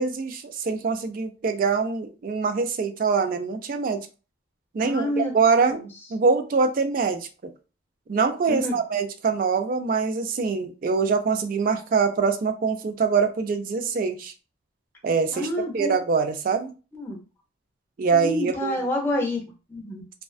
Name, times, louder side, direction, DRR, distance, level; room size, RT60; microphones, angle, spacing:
voice 1, 0.0-4.1 4.7-5.9 6.1-7.5 8.1-14.3 15.0-15.5 15.7-16.7 18.0-18.7, right 5 dB, 45° right, 7 dB, 0.3 m, -24 dB
voice 2, 4.8-5.3 5.7-5.9 8.5-8.7 15.3-16.0 16.9-17.2 18.1-19.4 19.7-20.0, left 1 dB, 10° left, 0 dB, 0.5 m, -28 dB
2.4 x 2.2 x 2.3 m, 0.33 s
head